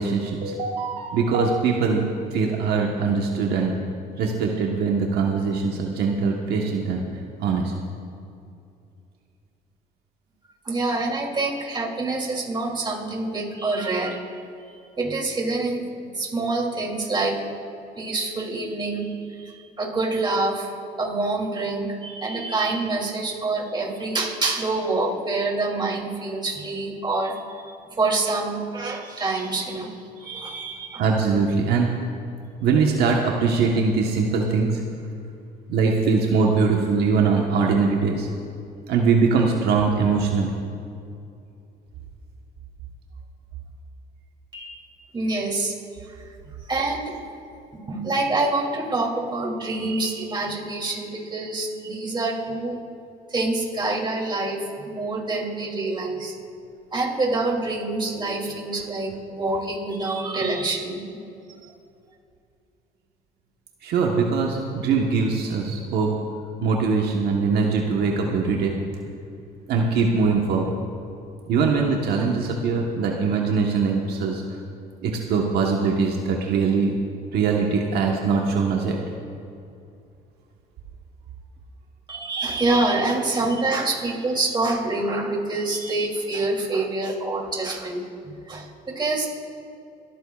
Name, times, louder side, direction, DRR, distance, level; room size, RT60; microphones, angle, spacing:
voice 1, 0.0-3.7 4.2-7.0 7.4-7.7 31.0-31.9 32.6-34.8 35.7-38.3 38.9-40.5 63.8-66.1 66.6-68.8 69.7-70.8 71.5-74.4 75.0-76.9 77.3-79.0, right 4 dB, 75° right, 0 dB, 1.3 m, -22 dB
voice 2, 10.6-14.2 15.0-17.4 18.0-20.7 21.0-27.3 27.7-31.0 44.5-44.8 45.1-45.8 46.7-47.2 47.7-52.8 53.3-56.3 56.9-61.0 61.6-61.7 82.1-89.3, right 2 dB, 25° right, -1 dB, 2.9 m, -26 dB
25.5 x 13.5 x 2.4 m, 2.6 s
cardioid pair, 110°, 17 cm